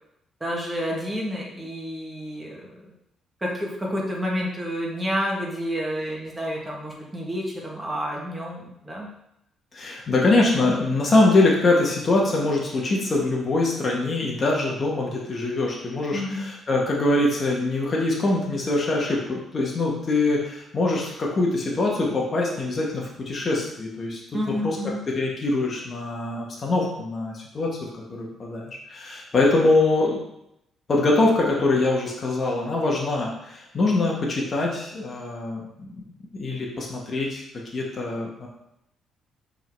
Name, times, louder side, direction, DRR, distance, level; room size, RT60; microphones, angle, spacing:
voice 1, 0.4-2.8 3.4-9.1 16.1-16.5 24.3-25.0, equal, 15° right, -3 dB, 1.8 m, -29 dB
voice 2, 9.7-24.2 24.6-24.8 25.1-30.2 30.9-35.9 36.3-37.4 37.7-38.5, left 2 dB, 40° left, -3 dB, 1.7 m, -23 dB
5.6 x 4.0 x 4.7 m, 0.81 s
cardioid pair, 90°, 0 cm